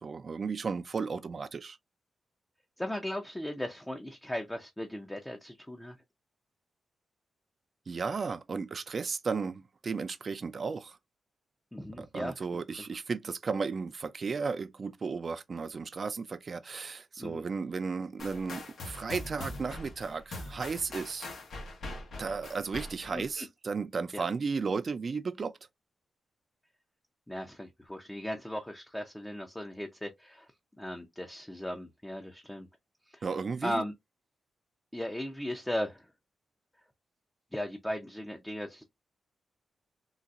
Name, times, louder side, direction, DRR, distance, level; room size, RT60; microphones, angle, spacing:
voice 1, 0.0-1.8 7.9-11.0 12.0-21.3 22.2-25.5 33.2-33.8, right 5 dB, 45° right, 0.4 m, -34 dB
voice 2, 2.8-6.0 11.7-12.3 17.2-17.4 23.1-23.5 24.1-24.3 27.3-30.5 30.8-32.7 33.1-33.3 33.6-33.9 34.9-36.1 37.5-38.8, left 1 dB, 10° left, 0.5 m, -37 dB
sound 1, 18.2-23.3, left 2 dB, 70° left, 1.2 m, -42 dB
3.9 x 2.5 x 2.4 m
wide cardioid pair, 115°, 0 cm